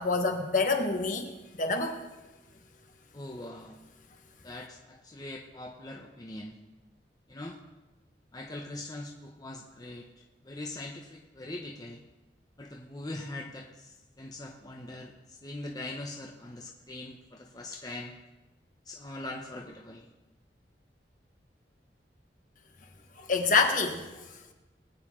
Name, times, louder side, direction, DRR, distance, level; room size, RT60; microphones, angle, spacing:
voice 1, 0.0-1.3 1.6-2.0 23.2-24.2, left 4 dB, 50° left, 4 dB, 1.5 m, -27 dB
voice 2, 3.1-3.8 4.4-6.6 7.3-7.6 8.3-10.1 10.4-12.0 12.6-13.9 14.2-15.1 15.4-18.1 18.9-20.1, left 2 dB, 20° left, 1 dB, 0.8 m, -41 dB
21.0 x 9.5 x 3.7 m, 1.1 s
head